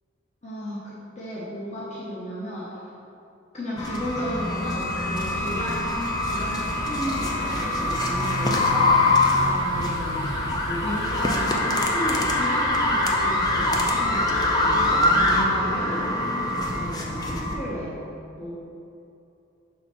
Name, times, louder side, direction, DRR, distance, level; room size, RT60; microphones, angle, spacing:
voice 1, 0.4-2.8 3.5-10.3 10.6-16.0 16.5-18.0 18.4-18.5, equal, 35° left, -7 dB, 0.8 m, -33 dB
sound 1, 3.8-17.5, left 2 dB, 20° left, 0.4 m, -24 dB
sound 2, 5.1-15.4, right 1 dB, 75° right, 0.8 m, -35 dB
5.8 x 4.0 x 4.2 m, 2.7 s
head